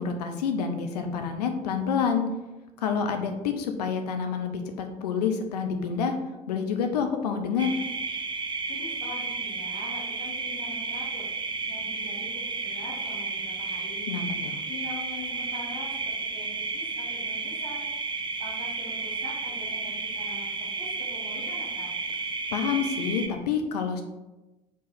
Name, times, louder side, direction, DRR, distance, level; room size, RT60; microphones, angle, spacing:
voice 1, 0.0-2.3 2.8-6.1 6.5-7.7 14.1-14.5 22.5-24.0, left 6 dB, 70° left, 5 dB, 0.7 m, -28 dB
sound 1, 7.6-23.3, right 4 dB, 20° right, 0.8 m, -32 dB
voice 2, 8.7-11.3 11.6-14.2 14.7-17.8 18.4-22.0, left 2 dB, 45° left, -9 dB, 2.0 m, -43 dB
5.0 x 4.0 x 5.8 m, 1.1 s
figure-of-eight pair, 55°, 21 cm